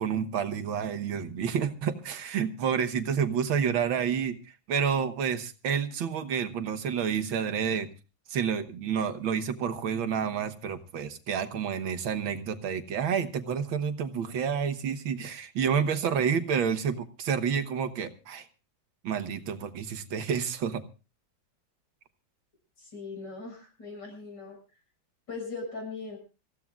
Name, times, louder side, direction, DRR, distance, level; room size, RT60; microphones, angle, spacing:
voice 1, 0.0-4.4 4.7-7.9 8.3-18.5 19.0-20.8, right 7 dB, 80° right, 9 dB, 2.0 m, -29 dB
voice 2, 22.8-24.6 25.3-26.2, left 3 dB, 60° left, 2 dB, 7.3 m, -39 dB
26.0 x 15.0 x 2.4 m, 0.32 s
omnidirectional pair, 2.1 m